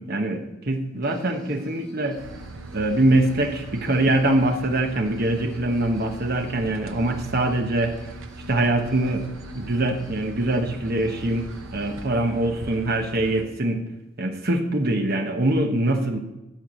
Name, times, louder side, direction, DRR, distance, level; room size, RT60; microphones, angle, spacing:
voice 1, 0.0-2.2 2.7-8.0 8.5-9.3 9.5-13.8 14.2-16.2, right 1 dB, 45° right, 4 dB, 1.1 m, -23 dB
sound 1, 1.0-12.1, left 3 dB, 5° left, 1.5 m, -47 dB
sound 2, 2.2-13.5, right 3 dB, 70° right, 0.8 m, -40 dB
13.5 x 4.7 x 8.1 m, 1.0 s
head